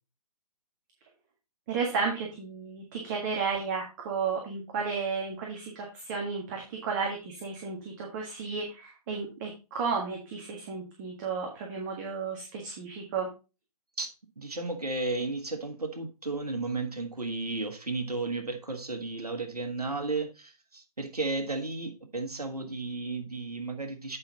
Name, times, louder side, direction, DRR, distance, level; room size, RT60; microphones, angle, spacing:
voice 1, 1.7-13.3, right 5 dB, 30° right, 1.7 m, -33 dB
voice 2, 14.4-24.2, right 3 dB, 75° right, 1.6 m, -33 dB
8.7 x 5.6 x 4.0 m
figure-of-eight pair, 130°, 20 cm